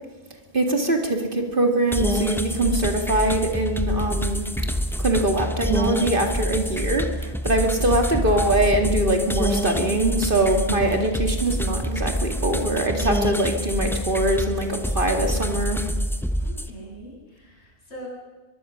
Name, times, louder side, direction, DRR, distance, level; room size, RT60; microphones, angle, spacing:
voice 1, 0.5-4.5 5.0-15.8, right 1 dB, 50° right, 4 dB, 2.4 m, -23 dB
sound 1, 1.9-16.7, equal, ahead, 0.9 m, -26 dB
voice 2, 16.4-18.1, right 1 dB, 75° left, -3 dB, 8.3 m, -42 dB
23.5 x 22.5 x 6.5 m, 1.3 s
omnidirectional pair, 1.2 m